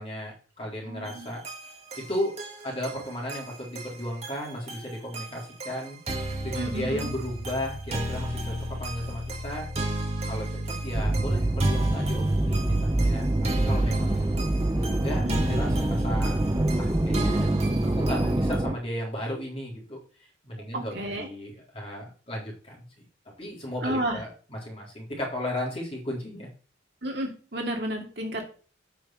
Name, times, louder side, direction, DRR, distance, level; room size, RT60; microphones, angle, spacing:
voice 1, 0.0-1.4 1.9-2.4 2.6-6.2 6.4-9.7 10.2-13.3 13.6-14.2 14.7-16.4 16.8-17.5 17.8-22.9 23.4-26.5, left 1 dB, 30° left, -3 dB, 3.8 m, -35 dB
voice 2, 0.8-1.3 6.6-7.1 15.2-15.4 20.7-21.3 23.8-24.2 27.0-28.5, right 1 dB, 60° right, 1 dB, 2.5 m, -31 dB
sound 1, 1.1-18.6, right 1 dB, 35° right, 1.8 m, -33 dB
sound 2, 10.9-18.7, right 1 dB, 15° right, 0.6 m, -25 dB
8.4 x 6.2 x 5.9 m, 0.39 s
head